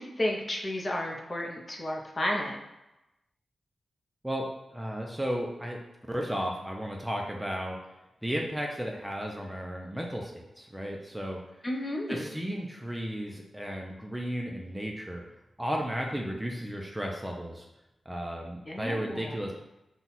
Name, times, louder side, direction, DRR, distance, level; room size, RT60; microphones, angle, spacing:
voice 1, 0.0-2.5 11.6-12.3 18.7-19.4, left 1 dB, 30° left, 0 dB, 0.7 m, -32 dB
voice 2, 4.2-5.8 6.1-7.8 8.2-11.4 12.1-15.2 15.6-17.7 18.1-19.5, equal, 5° right, 0 dB, 0.5 m, -34 dB
5.7 x 2.4 x 4.0 m, 0.95 s
wide cardioid pair, 120°, 0 cm